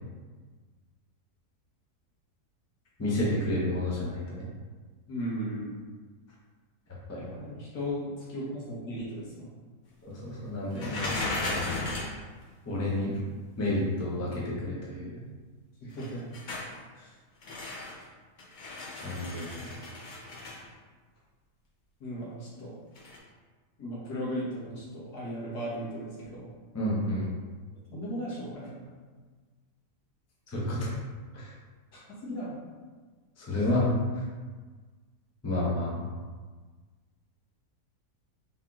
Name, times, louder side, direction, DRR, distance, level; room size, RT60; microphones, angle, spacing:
voice 1, 3.0-4.4 7.1-7.3 10.0-11.8 12.7-13.2 13.6-15.2 19.0-19.7 26.7-27.3 30.5-30.9 31.3-31.5 33.4-33.9 35.4-36.1, left 1 dB, 15° left, -6 dB, 0.6 m, -30 dB
voice 2, 5.1-5.8 7.2-9.5 15.8-16.2 17.0-17.1 22.0-22.7 23.8-26.5 27.9-28.9 32.1-32.5 33.5-33.6, equal, 80° left, -6 dB, 1.8 m, -36 dB
sound 1, 10.7-12.2 15.9-16.7 17.4-18.0 18.4-20.6 22.9-23.2, left 2 dB, 65° left, 0.4 m, -35 dB
4.0 x 3.0 x 3.6 m, 1.4 s
omnidirectional pair, 1.7 m